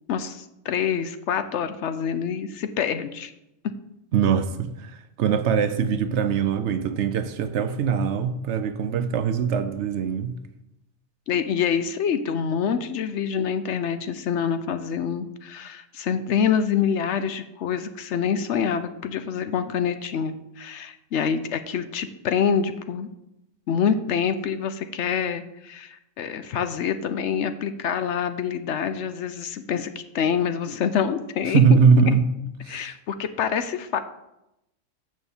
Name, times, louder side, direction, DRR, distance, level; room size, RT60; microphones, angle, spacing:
voice 1, 0.1-3.3 11.3-23.1 23.7-31.6 32.7-34.0, left 7 dB, 65° left, 0.9 m, -26 dB
voice 2, 4.1-10.3 31.5-32.2 32.6-32.9, right 6 dB, 65° right, 0.9 m, -22 dB
6.4 x 6.3 x 7.1 m
omnidirectional pair, 1.4 m